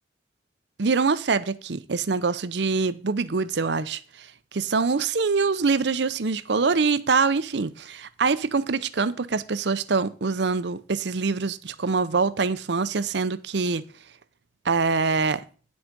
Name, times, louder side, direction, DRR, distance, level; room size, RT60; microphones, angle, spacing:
voice 1, 0.8-4.0 4.5-13.9 14.7-15.4, right 4 dB, 70° right, 0.6 m, -24 dB
9.8 x 6.2 x 5.2 m
head